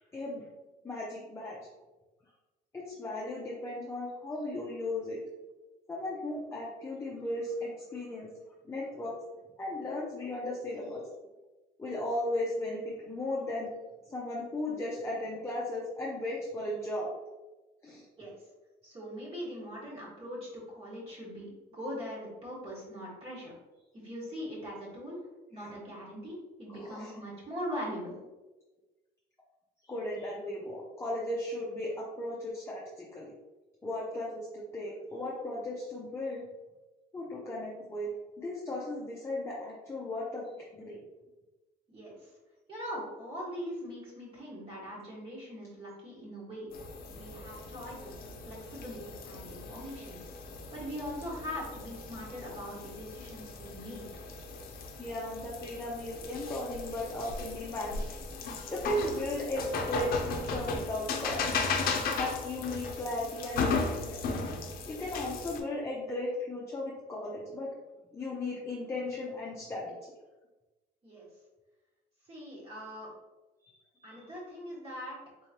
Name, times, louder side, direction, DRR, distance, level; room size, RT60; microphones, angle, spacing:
voice 1, 0.1-0.5 0.8-1.6 2.7-5.2 5.9-8.3 8.6-9.1 9.6-11.1 11.8-13.7 14.1-17.1 17.8-18.0 26.7-27.1 29.8-33.3 33.8-36.5 37.1-38.1 38.4-41.0 55.0-58.0 58.7-61.7 62.1-64.2 64.9-67.7 68.1-70.1 73.6-74.3, left 1 dB, 15° left, -4 dB, 0.6 m, -36 dB
voice 2, 18.2-18.5 18.8-23.5 23.9-25.2 25.5-28.2 41.9-42.3 42.7-46.7 47.1-50.2 50.7-54.1 71.0-71.3 72.2-73.1 74.0-75.2, equal, 35° right, -6 dB, 1.5 m, -41 dB
sound 1, 46.7-65.6, left 4 dB, 60° left, 0.6 m, -36 dB
3.8 x 3.1 x 2.8 m, 1.1 s
cardioid pair, 110°, 17 cm